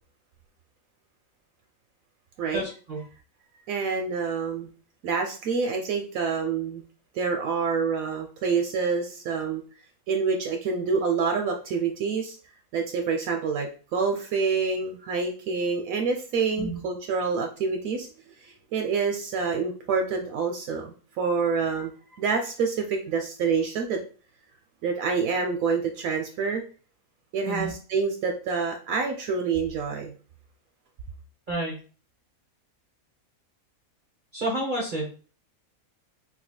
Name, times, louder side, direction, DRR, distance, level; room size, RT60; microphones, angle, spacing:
voice 1, 2.5-3.0 16.6-16.8 27.5-27.7 31.5-31.7 34.3-35.1, right 1 dB, 45° right, -2 dB, 0.8 m, -30 dB
voice 2, 3.7-4.7 5.0-6.8 7.1-9.6 10.1-12.4 12.7-18.1 18.4-24.0 24.8-26.6 27.3-30.2, right 5 dB, 75° right, 3 dB, 0.9 m, -27 dB
3.3 x 3.2 x 2.2 m, 0.38 s
omnidirectional pair, 1.5 m